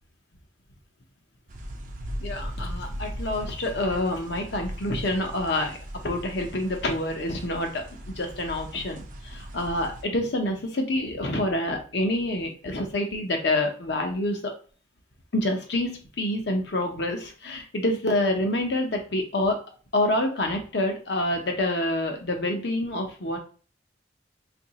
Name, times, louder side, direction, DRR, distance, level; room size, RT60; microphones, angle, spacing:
sound 1, 1.5-10.0, equal, 45° right, 0.5 m, -38 dB
voice 1, 2.2-5.8 6.0-14.5 15.3-19.6 19.9-23.4, left 1 dB, 65° left, 3 dB, 0.7 m, -27 dB
2.8 x 2.5 x 4.0 m, 0.39 s
head